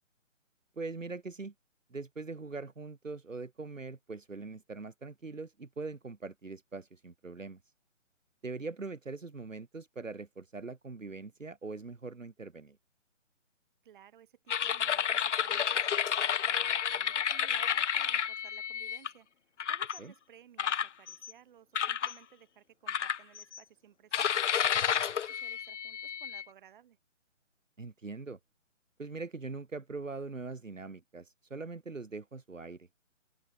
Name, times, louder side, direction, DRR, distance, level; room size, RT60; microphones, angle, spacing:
voice 1, 0.8-1.5 1.9-7.6 8.4-12.8 20.0-20.1 27.8-28.4 29.0-32.9, right 3 dB, 85° right, 2.7 m, -42 dB
voice 2, 13.8-19.3 19.7-27.0, right 10 dB, 40° right, 7.8 m, -58 dB
sound 1, 14.5-19.1 19.6-20.0 20.6-21.3 21.8-22.1 22.9-23.6 24.1-26.4, left 8 dB, 70° left, 0.6 m, -31 dB
open air
figure-of-eight pair, 145°, 38 cm